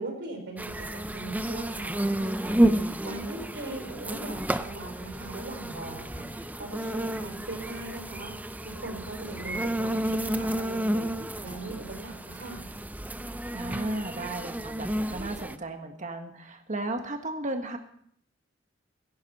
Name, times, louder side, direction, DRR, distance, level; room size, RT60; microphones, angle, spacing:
voice 1, 0.0-8.3 8.6-12.7, right 2 dB, 65° right, 3 dB, 4.4 m, -40 dB
sound 1, 0.6-15.6, right 1 dB, 10° right, 0.5 m, -31 dB
voice 2, 13.5-17.8, right 2 dB, 40° right, 5 dB, 1.5 m, -34 dB
17.0 x 15.0 x 4.2 m, 0.64 s
head